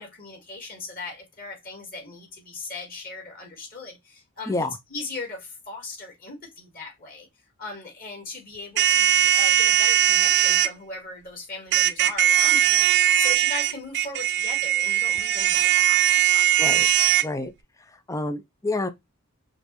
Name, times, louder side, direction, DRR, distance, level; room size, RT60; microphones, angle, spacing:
voice 1, 0.0-4.6 4.9-7.3 7.6-16.8, left 3 dB, 40° left, 2.1 m, -38 dB
voice 2, 4.5-4.8 16.6-16.9 17.2-17.5 18.1-18.9, left 2 dB, 15° left, 0.4 m, -28 dB
sound 1, 8.8-10.7 11.7-17.2, right 12 dB, 55° right, 0.4 m, -20 dB
5.1 x 3.2 x 3.1 m
head